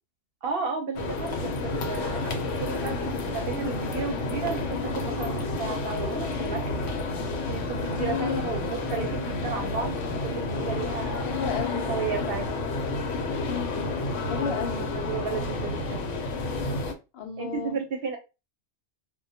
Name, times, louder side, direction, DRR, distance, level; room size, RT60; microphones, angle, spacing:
voice 1, 0.4-6.8 7.5-11.3 11.7-12.6 14.4-16.0 17.4-18.2, right 5 dB, 60° right, 0.7 m, -33 dB
sound 1, 1.0-16.9, left 3 dB, 90° left, 0.9 m, -30 dB
voice 2, 8.0-8.5 11.2-11.9 13.5-14.9 17.1-17.8, left 7 dB, 65° left, 0.7 m, -32 dB
2.2 x 2.1 x 2.6 m
omnidirectional pair, 1.2 m